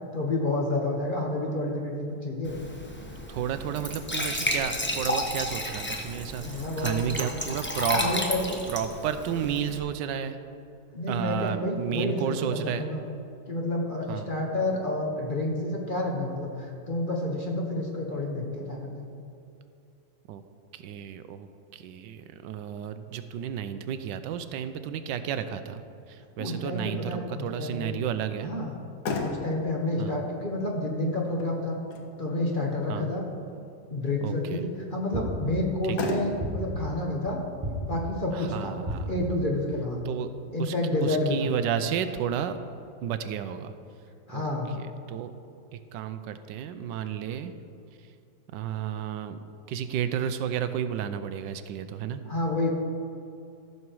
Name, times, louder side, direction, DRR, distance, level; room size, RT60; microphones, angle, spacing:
voice 1, 0.1-2.6 6.4-7.3 7.9-8.6 10.9-13.0 13.5-19.1 26.4-28.0 28.4-28.8 29.2-31.8 32.2-33.2 33.9-37.4 37.8-38.7 39.1-40.0 40.5-41.5 44.3-44.7 52.2-52.7, left 2 dB, 35° left, 0 dB, 1.1 m, -29 dB
Glass / Trickle dribble / Fill (with liquid), 2.4-9.8, left 1 dB, 10° left, 0.5 m, -32 dB
voice 2, 3.3-8.0 8.7-10.4 11.1-12.9 14.1-14.3 20.3-20.4 20.7-21.5 21.7-25.8 26.1-28.5 30.0-30.2 32.9-33.1 34.2-34.6 35.9-36.1 38.3-39.1 40.1-40.3 40.6-40.7 41.0-42.6 43.0-43.7 44.3-44.5 44.8-45.3 45.7-47.5 48.5-49.4 49.7-52.2, right 9 dB, 85° right, 10 dB, 1.3 m, -32 dB
Motor vehicle (road), 28.7-41.6, left 3 dB, 70° left, 1.5 m, -40 dB
sound 1, 35.1-35.8 36.4-37.0 37.6-38.3 38.9-39.5, equal, 15° right, 1.7 m, -33 dB
14.0 x 6.8 x 4.6 m, 2.7 s
omnidirectional pair, 1.9 m